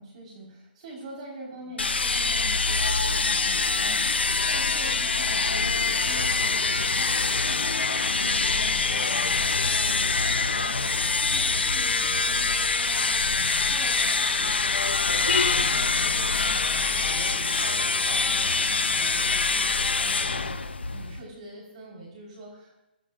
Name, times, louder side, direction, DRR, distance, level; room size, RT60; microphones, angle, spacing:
voice 1, 0.0-22.8, right 2 dB, 45° right, -2 dB, 4.9 m, -44 dB
sound 1, 1.8-21.2, left 4 dB, 80° left, 1.0 m, -24 dB
24.5 x 18.0 x 2.6 m, 0.96 s
figure-of-eight pair, 135°, 6 cm